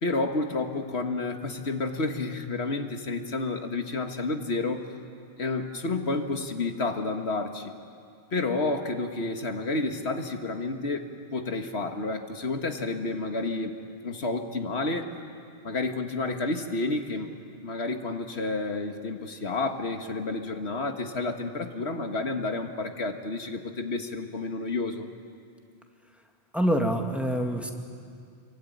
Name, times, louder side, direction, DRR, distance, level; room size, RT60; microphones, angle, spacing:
voice 1, 0.0-4.9 5.4-7.7 8.3-13.7 14.0-15.1 15.6-17.3 17.6-25.1, left 3 dB, 85° left, 5 dB, 1.9 m, -30 dB
voice 2, 26.5-27.7, equal, ahead, 2 dB, 2.0 m, -25 dB
26.5 x 23.0 x 9.3 m, 2.3 s
omnidirectional pair, 1.1 m